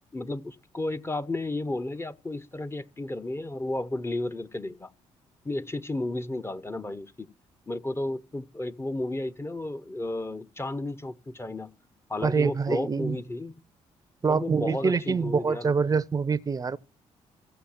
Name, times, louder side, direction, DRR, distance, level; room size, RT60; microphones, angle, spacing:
voice 1, 0.1-4.9 5.4-7.3 7.7-11.7 12.1-13.5 14.3-15.7, left 2 dB, 15° left, 0.8 m, -33 dB
voice 2, 12.2-13.2 14.2-16.8, right 5 dB, 20° right, 0.7 m, -25 dB
16.0 x 7.0 x 7.1 m
figure-of-eight pair, 40°, 17 cm